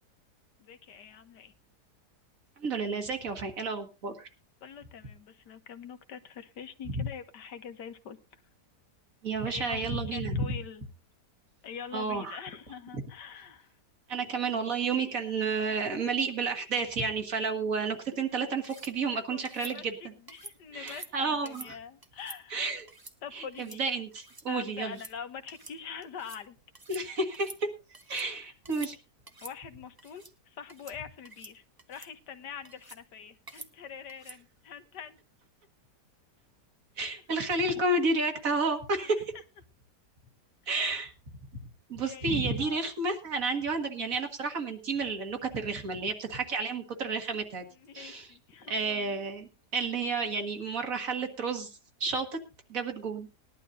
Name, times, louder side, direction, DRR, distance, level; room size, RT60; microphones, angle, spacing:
voice 1, 0.6-1.5 4.6-8.2 9.5-10.9 11.6-13.7 19.1-22.6 23.2-23.8 24.5-26.6 27.0-27.1 29.4-30.2 30.5-31.6 31.9-35.2 39.0-39.1 40.8-40.9 42.0-42.8 47.8-49.1, left 7 dB, 85° left, 9 dB, 1.7 m, -44 dB
voice 2, 2.6-4.3 6.9-7.1 9.2-10.6 11.9-12.4 12.9-13.0 14.1-20.1 20.7-21.8 22.5-22.9 23.3-25.0 26.9-27.7 28.1-29.0 37.0-39.3 40.7-41.1 41.9-47.7 47.9-48.3 48.7-51.7 52.0-52.4 52.7-53.3, right 3 dB, 55° right, 5 dB, 2.1 m, -31 dB
sound 1, 18.6-18.9 19.5-19.7 20.3-20.6 20.9-21.1 21.5-21.7 22.0-22.4 22.9-23.2 23.5-23.8 24.1-24.5 24.8-25.1 25.5-25.8 26.0-26.4 26.8-27.0 27.3-28.3 28.6-28.9 29.3-29.6 30.0-30.3 30.7-31.0 31.3-31.5 31.8-32.1 32.7-33.0 33.5-33.7 34.1-34.4, right 2 dB, 20° right, 0.6 m, -48 dB
20.0 x 11.5 x 2.7 m, 0.29 s
omnidirectional pair, 1.8 m